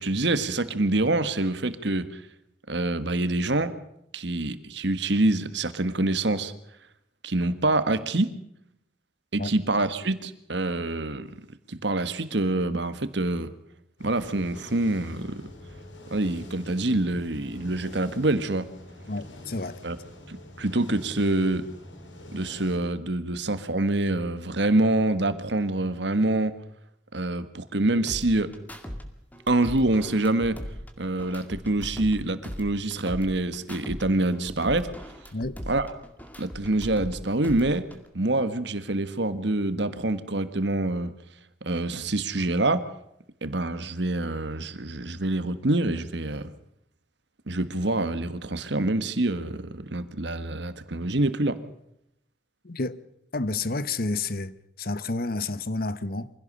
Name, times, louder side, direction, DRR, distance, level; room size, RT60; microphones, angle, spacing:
voice 1, 0.0-2.2 2.7-3.8 4.1-6.5 7.2-8.3 9.3-11.3 11.7-13.5 14.0-15.5 16.1-18.7 19.8-20.0 20.3-21.7 22.3-26.6 27.1-28.5 29.5-30.6 31.0-34.9 35.7-35.9 36.4-37.8 38.1-41.1 41.6-42.8 43.4-46.5 47.5-51.6, right 2 dB, 65° right, 1.5 m, -26 dB
sound 1, 14.0-22.8, left 1 dB, 75° left, 3.8 m, -45 dB
voice 2, 19.1-19.8 35.3-35.6 52.6-53.0 53.3-56.3, left 3 dB, 50° left, 1.0 m, -30 dB
sound 2, 28.1-29.0 29.3-32.2 32.4-34.0 34.3-37.1 37.4-38.1, equal, 10° left, 2.1 m, -39 dB
24.5 x 16.5 x 6.7 m
head